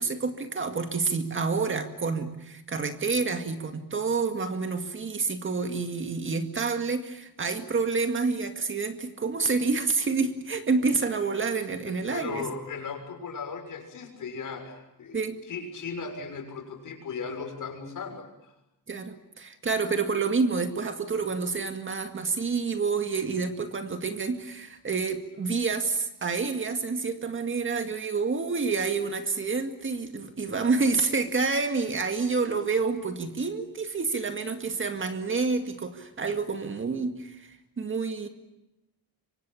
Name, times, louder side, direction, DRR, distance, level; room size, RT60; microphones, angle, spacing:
voice 1, 0.0-12.5 15.1-15.4 18.9-38.3, right 4 dB, 35° right, 7 dB, 2.0 m, -28 dB
voice 2, 11.9-15.2 15.5-18.5, left 5 dB, 55° left, 4 dB, 6.6 m, -37 dB
26.5 x 25.0 x 8.8 m, 0.93 s
wide cardioid pair, 170°, 37 cm